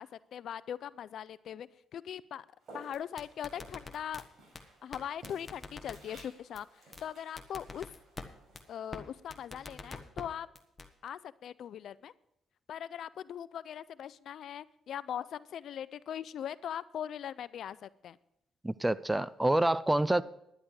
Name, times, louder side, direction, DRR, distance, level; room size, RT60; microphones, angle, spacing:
voice 1, 0.0-2.5 2.7-4.2 4.8-7.9 8.7-10.5 11.0-12.1 12.7-18.2, left 9 dB, 65° left, 0.4 m, -40 dB
Walk footsteps, 2.6-9.7, right 2 dB, 50° right, 5.5 m, -57 dB
sound 1, 2.9-4.2 4.6-4.7 4.9-5.0 5.2-6.2 6.6-6.7 6.9-7.0 7.4-8.3 8.6-8.7 8.9-9.0 9.3-10.2 10.6-10.9, left 3 dB, 25° left, 1.3 m, -44 dB
voice 2, 18.6-20.2, right 1 dB, 10° right, 0.4 m, -27 dB
11.5 x 10.0 x 4.8 m
cardioid pair, 90°, 0 cm